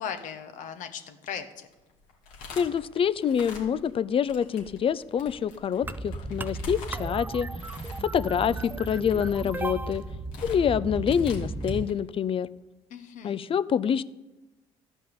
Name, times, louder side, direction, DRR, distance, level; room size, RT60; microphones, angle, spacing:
voice 1, 0.0-1.7 12.9-13.4, left 7 dB, 65° left, 8 dB, 1.3 m, -38 dB
sound 1, 1.6-4.0 4.3-11.9, left 3 dB, 80° left, 2.5 m, -45 dB
voice 2, 2.5-7.5 8.0-10.0 10.4-12.5 13.2-14.0, left 8 dB, 40° left, 16 dB, 0.5 m, -26 dB
sound 2, 5.8-11.9, right 3 dB, 15° right, 0.5 m, -35 dB
13.5 x 5.4 x 8.7 m, 1.1 s
supercardioid pair, 70°, 14 cm